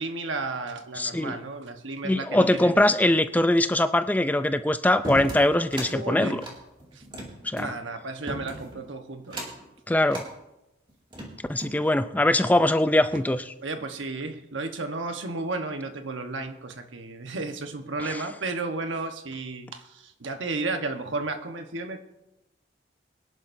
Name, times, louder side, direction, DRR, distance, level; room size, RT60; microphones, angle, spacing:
voice 1, 0.0-2.8 5.9-6.4 6.9-7.0 7.5-9.5 13.1-13.2 13.6-22.0, right 3 dB, 80° right, 6 dB, 1.1 m, -33 dB
voice 2, 1.0-1.4 2.0-6.4 7.4-7.7 9.9-10.2 11.5-13.5 18.1-18.2, left 1 dB, 10° left, 11 dB, 0.4 m, -22 dB
sound 1, 5.0-5.9 6.3-7.7 8.3-8.8 9.2-9.7 10.1-10.3 10.9-11.8, right 1 dB, 25° right, 2.3 m, -36 dB
22.5 x 11.0 x 2.7 m, 0.95 s
head